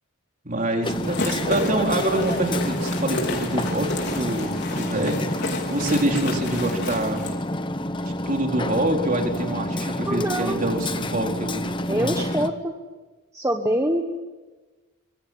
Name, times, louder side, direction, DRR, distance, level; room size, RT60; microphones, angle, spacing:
voice 1, 0.4-5.4 5.7-7.3 8.0-12.1, right 1 dB, 35° right, 2 dB, 4.2 m, -26 dB
Hammer, 0.8-12.5, left 1 dB, 20° left, 0.9 m, -29 dB
sound 1, 0.9-7.4, left 2 dB, 50° left, 4.5 m, -32 dB
voice 2, 10.0-10.6 11.9-12.7 13.3-14.0, right 1 dB, 15° right, 3 dB, 1.4 m, -24 dB
25.5 x 23.5 x 9.4 m, 1.2 s
head